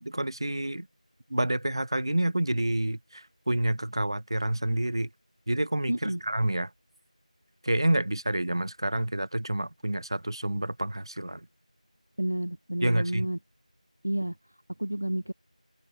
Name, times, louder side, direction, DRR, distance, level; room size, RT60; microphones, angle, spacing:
voice 1, 0.0-0.9 1.3-5.1 5.5-6.7 7.6-11.5 12.8-13.3, right 1 dB, 40° right, 5.3 m, -28 dB
voice 2, 5.9-6.2 12.2-13.4 14.0-14.3 14.8-15.3, right 1 dB, 5° right, 0.5 m, -30 dB
figure-of-eight pair, 175°, 4 cm